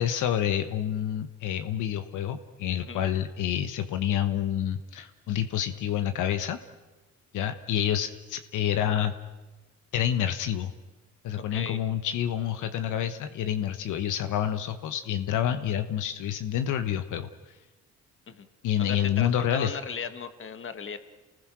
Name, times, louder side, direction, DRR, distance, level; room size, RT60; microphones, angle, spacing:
voice 1, 0.0-6.6 7.3-9.1 9.9-10.7 11.2-17.3 18.6-19.8, left 10 dB, 80° left, 9 dB, 1.1 m, -28 dB
voice 2, 11.5-11.8 18.3-18.5 18.8-21.0, left 6 dB, 40° left, 10 dB, 1.7 m, -36 dB
28.5 x 20.0 x 6.2 m, 1.2 s
cardioid pair, 90°, 30 cm